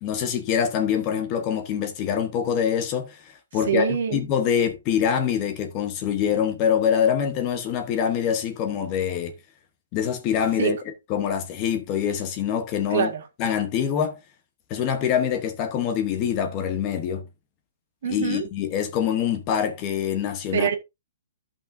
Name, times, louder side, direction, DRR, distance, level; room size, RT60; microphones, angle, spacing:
voice 1, 0.0-9.3 9.9-10.8 11.1-13.1 13.4-14.2 14.7-17.3 18.1-20.7, left 8 dB, 20° left, 0.9 m, -25 dB
voice 2, 3.7-4.2 10.6-10.7 12.9-13.2 18.0-18.5 20.5-20.7, right 8 dB, 50° right, 1.7 m, -24 dB
14.0 x 5.8 x 2.6 m
hypercardioid pair, 180°, 0 cm